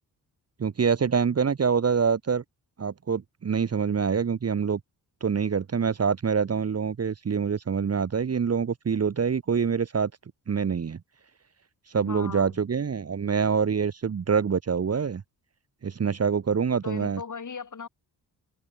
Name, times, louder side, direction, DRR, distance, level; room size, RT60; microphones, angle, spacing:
voice 1, 0.6-2.4 2.8-4.8 5.2-10.1 10.5-11.0 11.9-15.2 15.8-17.2, right 6 dB, 40° right, 1.1 m, -25 dB
voice 2, 12.0-12.6 16.8-17.9, left 6 dB, 50° left, 6.3 m, -38 dB
cardioid pair, 85°, 40 cm